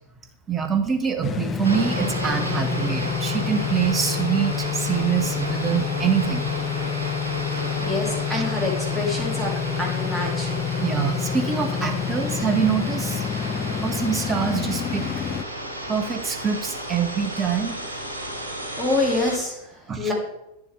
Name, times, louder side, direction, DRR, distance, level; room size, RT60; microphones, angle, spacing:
voice 1, 0.5-6.4 8.3-8.4 10.8-13.2 13.7-15.1 15.9-17.8 19.9-20.1, right 7 dB, 20° right, 6 dB, 0.9 m, -25 dB
sound 1, 1.2-15.4, left 8 dB, 25° left, 0.4 m, -28 dB
sound 2, 1.6-19.4, right 1 dB, 80° right, 1.6 m, -32 dB
voice 2, 7.8-10.5 18.8-20.1, left 2 dB, 5° right, -2 dB, 2.3 m, -26 dB
9.3 x 7.2 x 3.2 m, 0.89 s
figure-of-eight pair, 90°, 0 cm